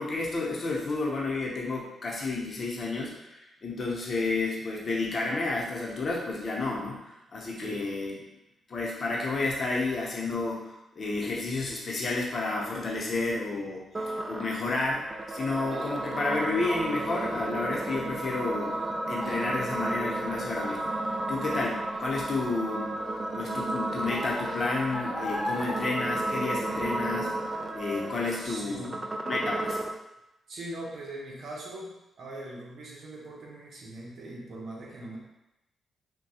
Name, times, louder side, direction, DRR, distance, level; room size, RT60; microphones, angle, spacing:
voice 1, 0.0-8.1 8.7-13.8 14.3-18.8 19.1-23.0 23.3-27.3 27.7-28.9 29.2-29.8, left 3 dB, 50° left, -3 dB, 0.7 m, -31 dB
voice 2, 7.6-7.9 28.4-29.1 30.5-35.2, right 1 dB, 65° right, -3 dB, 0.8 m, -41 dB
sound 1, 13.9-29.9, right 2 dB, 30° right, 0.3 m, -33 dB
Child speech kid speaking, 15.1-27.1 27.5-27.9 28.4-28.5, left 1 dB, ahead, 1.2 m, -42 dB
3.0 x 2.2 x 2.8 m, 0.92 s
cardioid pair, 65°, 0 cm